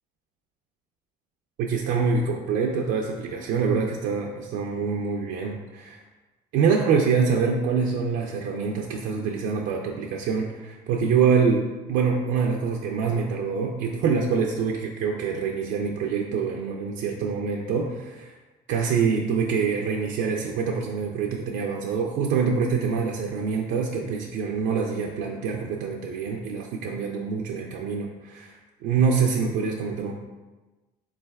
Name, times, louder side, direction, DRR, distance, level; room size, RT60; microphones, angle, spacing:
voice 1, 1.6-6.0 6.5-18.3 18.7-28.6 28.8-30.1, right 5 dB, 85° right, 0 dB, 0.4 m, -25 dB
3.9 x 3.2 x 3.3 m, 1.2 s
cardioid pair, 110°, 17 cm